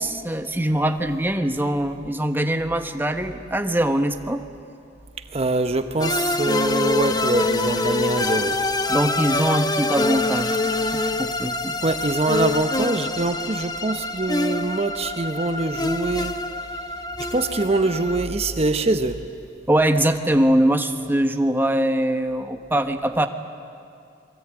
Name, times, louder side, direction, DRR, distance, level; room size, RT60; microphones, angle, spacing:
voice 1, 0.0-4.4 8.9-10.6 10.9-11.8 19.7-23.3, right 1 dB, 10° right, 7 dB, 1.2 m, -22 dB
voice 2, 5.3-8.6 11.6-16.4 17.3-19.2, right 2 dB, 35° right, 8 dB, 0.9 m, -24 dB
sound 1, 6.0-18.2, left 2 dB, 20° left, 1.0 m, -25 dB
28.0 x 23.0 x 9.0 m, 2.4 s
head